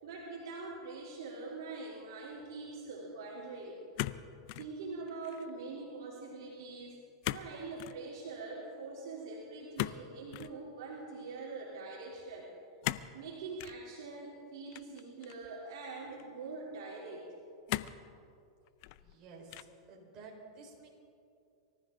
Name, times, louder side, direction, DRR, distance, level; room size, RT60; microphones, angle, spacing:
voice 1, 0.0-3.8 4.5-7.0 7.3-12.5 13.1-17.3, right 3 dB, 65° right, -4 dB, 3.5 m, -44 dB
sound 1, 4.0-4.7 5.1-5.5 7.2-7.5 7.8-8.0 9.8-10.5 12.8-13.1 13.6-13.8 14.7-15.5 16.2-16.3 17.7-18.1 18.7-19.1 19.5-19.9, left 17 dB, 55° left, 0.5 m, -38 dB
voice 2, 19.0-20.9, right 3 dB, 35° right, -1 dB, 4.7 m, -52 dB
24.5 x 14.0 x 3.9 m, 2.5 s
hypercardioid pair, 110°, 2 cm